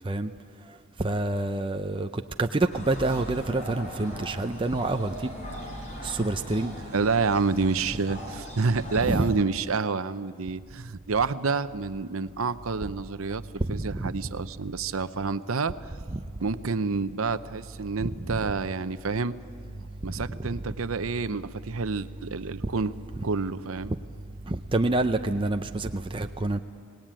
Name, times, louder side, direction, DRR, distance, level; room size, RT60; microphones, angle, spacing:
voice 1, 1.0-5.3 6.0-6.7 9.1-9.3 13.6-14.2 16.1-16.2 18.0-18.1 20.1-20.2 24.5-26.6, right 2 dB, 25° right, 6 dB, 0.5 m, -27 dB
sound 1, 2.7-9.3, equal, 35° left, 5.4 m, -39 dB
voice 2, 6.8-13.4 13.7-15.7 16.4-19.3 19.8-22.9 23.2-23.9, right 4 dB, 75° right, 13 dB, 0.7 m, -28 dB
25.5 x 19.0 x 9.0 m, 2.2 s
head